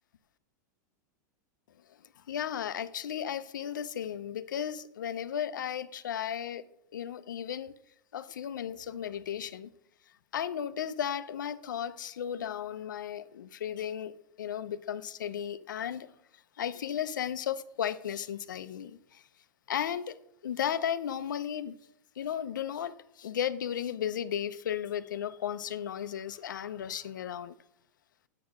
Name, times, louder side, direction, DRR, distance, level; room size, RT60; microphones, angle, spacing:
voice 1, 1.9-6.6 6.9-7.7 8.1-9.7 10.3-19.2 19.7-20.2 20.4-21.8 22.2-27.5, left 9 dB, 90° left, 0.6 m, -35 dB
8.5 x 7.6 x 6.0 m
hypercardioid pair, 120°, 10 cm